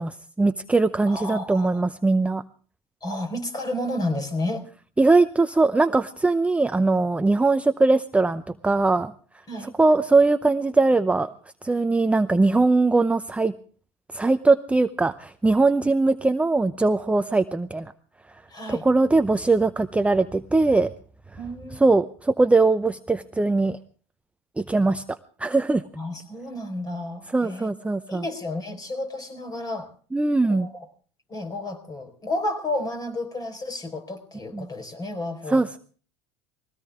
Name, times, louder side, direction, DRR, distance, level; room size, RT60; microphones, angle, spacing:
voice 1, 0.0-2.4 5.0-9.1 9.8-11.3 11.6-13.5 14.1-17.9 18.7-20.9 21.8-23.8 24.6-25.0 25.4-25.8 27.3-28.2 30.1-30.7 34.5-34.7 35.5-35.8, right 3 dB, 10° right, 10 dB, 0.6 m, -21 dB
voice 2, 1.1-1.8 3.0-4.7 9.5-9.7 15.8-15.9 18.5-18.9 21.4-22.0 25.9-27.7 28.1-29.9 30.4-30.9 31.3-35.8, left 1 dB, 25° left, 6 dB, 4.4 m, -31 dB
21.0 x 17.0 x 3.6 m, 0.42 s
hypercardioid pair, 90°, 15 cm